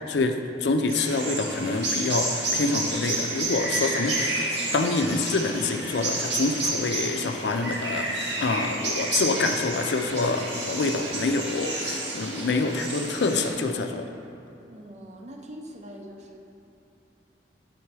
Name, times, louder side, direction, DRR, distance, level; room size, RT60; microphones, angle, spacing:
voice 1, 0.1-14.1, left 3 dB, 70° left, 6 dB, 0.5 m, -26 dB
sound 1, 0.9-13.5, right 2 dB, 80° right, 1.3 m, -30 dB
voice 2, 14.6-16.4, equal, 40° right, 2 dB, 0.6 m, -43 dB
8.6 x 3.8 x 4.7 m, 2.8 s
head